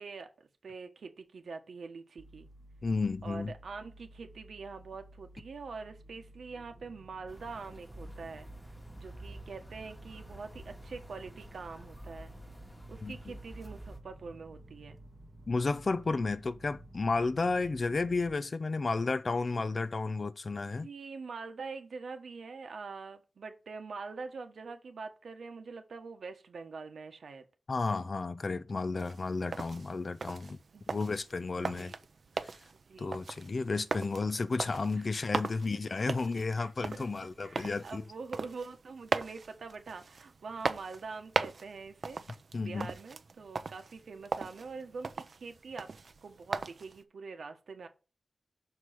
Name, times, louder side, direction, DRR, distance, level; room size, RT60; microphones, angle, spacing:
voice 1, 0.0-2.5 3.2-8.5 9.0-12.3 12.9-15.0 17.5-17.7 20.8-27.5 30.7-31.1 31.8-32.0 32.9-33.2 35.7-35.8 36.6-37.1 37.4-42.2 42.5-45.9 46.2-47.9, right 4 dB, 85° right, 1.3 m, -44 dB
sound 1, 2.2-18.3, right 1 dB, 30° right, 0.8 m, -53 dB
voice 2, 2.8-3.5 13.0-13.2 15.5-20.9 27.7-30.6 30.9-31.9 33.0-38.0 42.5-42.9, left 3 dB, 45° left, 0.5 m, -32 dB
sound 2, 7.3-14.0, right 1 dB, 10° left, 1.2 m, -50 dB
sound 3, 29.0-47.0, right 4 dB, 60° right, 0.6 m, -39 dB
6.2 x 4.8 x 5.7 m
wide cardioid pair, 105°, 0 cm